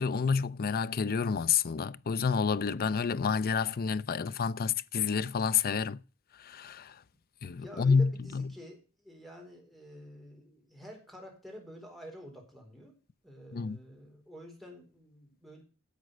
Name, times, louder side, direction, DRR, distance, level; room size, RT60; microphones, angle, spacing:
voice 1, 0.0-6.0 6.4-6.9 7.4-8.5 13.5-13.8, left 5 dB, 45° left, 0.5 m, -29 dB
voice 2, 7.6-12.9 13.2-15.6, equal, ahead, 4.1 m, -49 dB
11.0 x 7.3 x 6.5 m
head